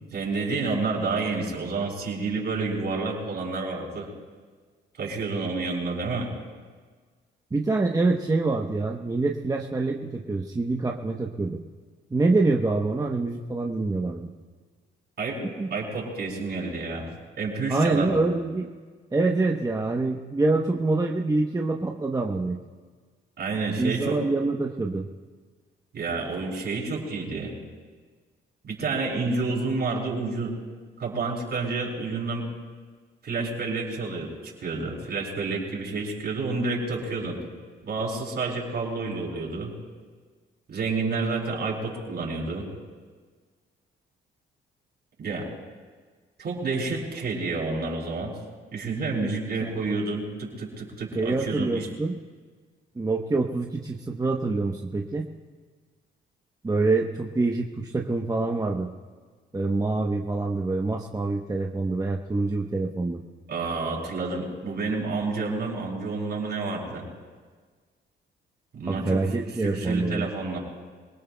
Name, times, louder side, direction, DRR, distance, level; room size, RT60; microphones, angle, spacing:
voice 1, 0.1-4.1 5.0-6.3 15.2-15.4 15.7-17.1 17.4-18.2 23.4-24.2 25.9-27.5 28.6-30.5 31.0-32.5 33.2-34.3 34.6-37.4 37.9-39.7 40.7-42.7 45.2-45.5 46.4-48.3 48.7-51.9 63.5-67.0 68.7-69.2 69.6-70.6, right 3 dB, 55° right, -2 dB, 6.0 m, -29 dB
voice 2, 7.5-11.6 12.1-14.3 15.6-15.7 17.7-18.7 19.1-22.6 23.8-25.1 49.6-49.8 51.1-52.1 53.0-55.3 56.6-58.9 59.5-63.2 68.9-70.3, right 3 dB, 20° right, 1 dB, 1.0 m, -25 dB
27.5 x 19.0 x 2.3 m, 1.5 s
cardioid pair, 90°, 20 cm